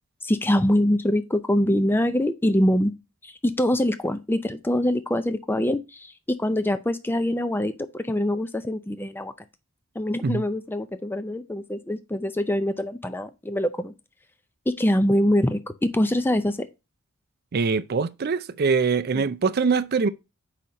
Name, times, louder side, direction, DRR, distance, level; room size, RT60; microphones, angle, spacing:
voice 1, 0.2-2.9 3.2-6.1 6.4-9.3 10.0-13.9 14.7-16.7 19.1-19.2, left 1 dB, 10° left, 0.4 m, -24 dB
voice 2, 17.5-20.1, right 5 dB, 45° right, 0.4 m, -23 dB
4.9 x 4.3 x 5.1 m
head